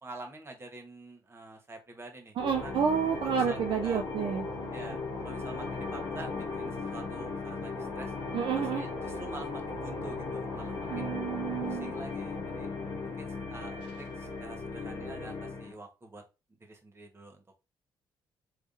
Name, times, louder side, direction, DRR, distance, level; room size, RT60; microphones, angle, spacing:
voice 1, 0.0-2.7 3.2-4.0 4.7-5.0 5.2-8.1 8.5-11.2 11.6-12.7 13.0-16.2 16.6-17.4, right 2 dB, 25° right, 3 dB, 1.3 m, -47 dB
sound 1, 2.4-15.7, left 3 dB, 65° left, 1.0 m, -37 dB
voice 2, 2.4-4.5 8.3-8.8 10.9-11.9, right 7 dB, 60° right, 4 dB, 0.4 m, -30 dB
3.5 x 3.2 x 2.7 m, 0.28 s
supercardioid pair, 55°, 9 cm